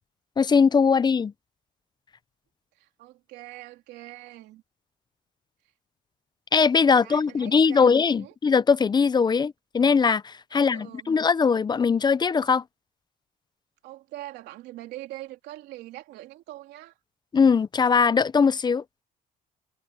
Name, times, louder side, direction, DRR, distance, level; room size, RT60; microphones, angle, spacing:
voice 1, 0.4-1.3 6.5-12.6 17.3-18.8, left 5 dB, 25° left, 0.6 m, -21 dB
voice 2, 2.8-4.6 6.9-7.9 8.2-8.4 10.5-11.2 13.8-16.9, right 16 dB, 85° right, 3.2 m, -43 dB
cardioid pair, 110°, 17 cm